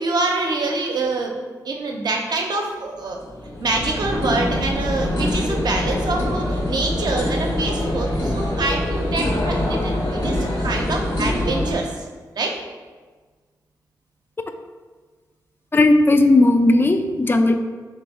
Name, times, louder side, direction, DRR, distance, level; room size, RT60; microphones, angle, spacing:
voice 1, 0.0-1.3 1.6-3.2 3.6-12.1 12.4-12.6, right 2 dB, 65° right, 1 dB, 0.8 m, -25 dB
sound 1, 3.0-11.7, left 1 dB, 60° left, 1.2 m, -24 dB
voice 2, 15.7-17.6, left 2 dB, 30° left, 7 dB, 0.4 m, -15 dB
3.4 x 3.2 x 4.7 m, 1.4 s
cardioid pair, 55°, 7 cm